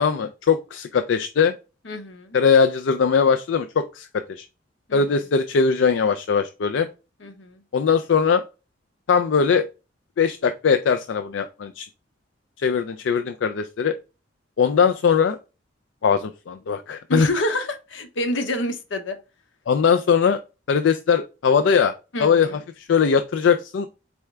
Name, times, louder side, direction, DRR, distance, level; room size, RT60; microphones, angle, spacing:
voice 1, 0.0-1.6 2.3-4.5 4.9-6.9 7.7-8.4 9.1-9.7 10.2-11.9 12.6-14.0 14.6-15.4 16.0-17.3 19.7-20.4 20.7-21.9 22.2-23.9, left 6 dB, 70° left, 8 dB, 0.4 m, -20 dB
voice 2, 1.8-2.4 4.9-5.1 7.2-7.6 17.1-19.2 22.1-22.6, left 1 dB, 85° left, 7 dB, 1.0 m, -28 dB
4.4 x 3.5 x 3.2 m, 0.29 s
head